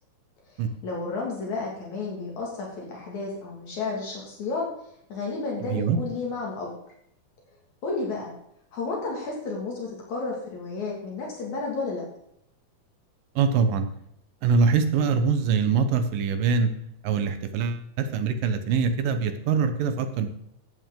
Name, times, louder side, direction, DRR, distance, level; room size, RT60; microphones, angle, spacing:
voice 1, 0.5-4.6 5.1-6.7 7.8-8.3 8.7-12.0, left 3 dB, 60° left, -2 dB, 3.3 m, -32 dB
voice 2, 5.7-6.0 13.4-13.9 14.4-16.7 17.0-20.3, right 5 dB, 85° right, 8 dB, 2.7 m, -23 dB
14.0 x 8.4 x 3.8 m, 0.73 s
omnidirectional pair, 3.8 m